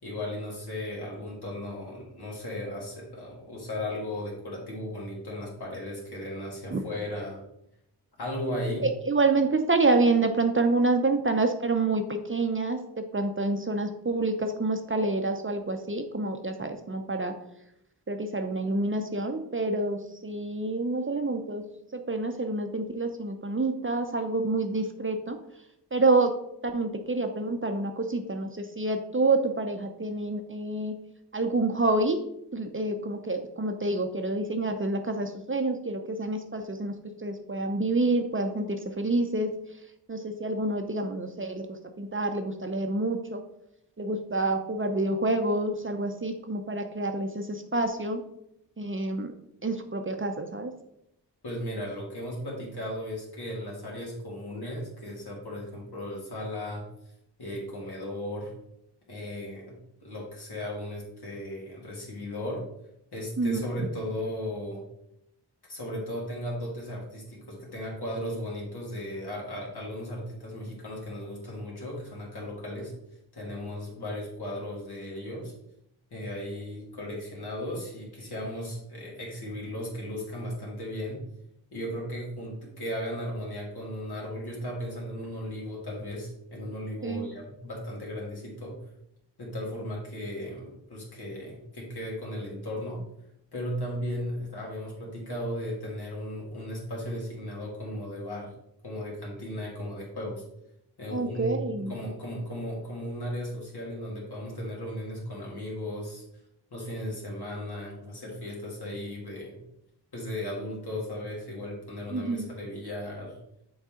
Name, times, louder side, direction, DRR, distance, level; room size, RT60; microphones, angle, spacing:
voice 1, 0.0-7.4 8.2-8.9 51.4-56.9 57.4-58.5 59.1-62.6 63.1-64.8 65.7-72.9 73.3-75.5 76.1-81.2 81.7-88.8 89.4-93.0 93.5-98.5 98.8-100.4 101.0-106.2 106.7-109.6 110.1-113.4, left 1 dB, 70° left, -3 dB, 2.2 m, -36 dB
voice 2, 8.8-17.3 18.1-21.6 21.9-25.4 25.9-26.4 26.6-31.0 31.3-32.2 32.5-37.0 37.2-39.5 40.1-43.4 44.0-48.2 48.8-49.3 49.6-50.7 63.4-63.6 87.0-87.3 101.1-101.9 112.1-112.5, right 2 dB, 30° right, 6 dB, 0.6 m, -28 dB
6.5 x 4.0 x 3.7 m, 0.79 s
wide cardioid pair, 60°, 41 cm